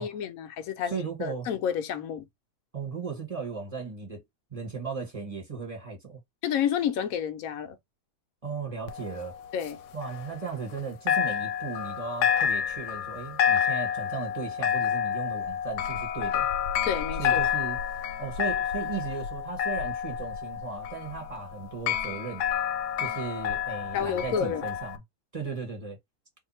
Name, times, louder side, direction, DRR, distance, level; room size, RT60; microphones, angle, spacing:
voice 1, 0.0-2.3 6.4-7.8 9.5-9.8 16.9-17.5 23.9-24.6, left 8 dB, 70° left, 1.0 m, -30 dB
voice 2, 0.9-1.5 2.7-4.2 4.5-6.2 8.4-9.4 9.9-16.4 17.2-17.8 18.2-22.4 23.0-25.0 25.3-26.0, right 5 dB, 25° right, 1.4 m, -36 dB
sound 1, 8.9-10.8 11.1-25.0, left 8 dB, 90° left, 1.2 m, -29 dB
2.7 x 2.6 x 4.1 m
omnidirectional pair, 1.7 m